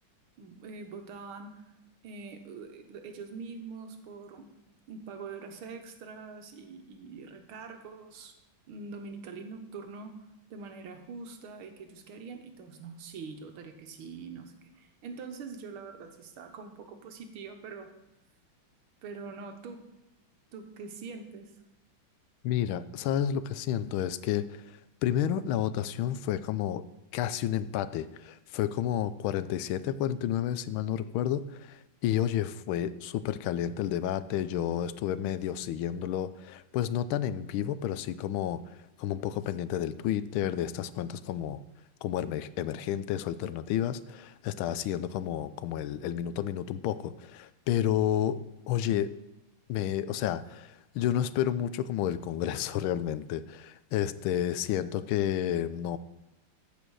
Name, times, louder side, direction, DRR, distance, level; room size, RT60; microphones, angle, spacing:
voice 1, 0.4-1.6 2.0-4.5 4.9-8.3 8.7-10.2 10.5-17.9 19.0-19.9 20.5-21.5, right 4 dB, 85° right, 6 dB, 2.0 m, -44 dB
voice 2, 22.4-26.8 27.1-41.6 42.0-48.4 48.7-49.1 49.7-56.0, left 10 dB, 80° left, 14 dB, 1.4 m, -31 dB
14.5 x 5.1 x 6.2 m, 0.94 s
omnidirectional pair, 2.3 m